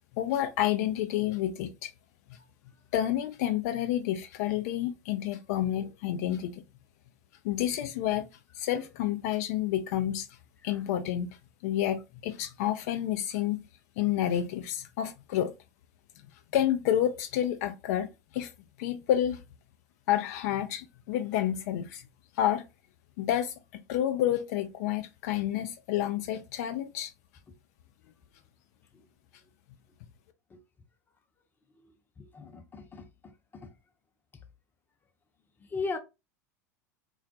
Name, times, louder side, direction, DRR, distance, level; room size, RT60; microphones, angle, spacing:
voice 1, 0.2-1.9 2.3-2.4 2.9-6.6 7.4-8.3 8.5-10.3 10.6-11.4 11.6-13.6 14.0-15.5 16.5-18.5 18.8-19.4 20.1-22.0 22.3-22.6 23.2-27.1, left 11 dB, 65° left, 0.3 m, -29 dB
voice 2, 32.2-33.0 33.5-33.7 35.7-36.0, left 4 dB, 20° left, 0.6 m, -36 dB
2.2 x 2.1 x 2.6 m
hypercardioid pair, 100°, 9 cm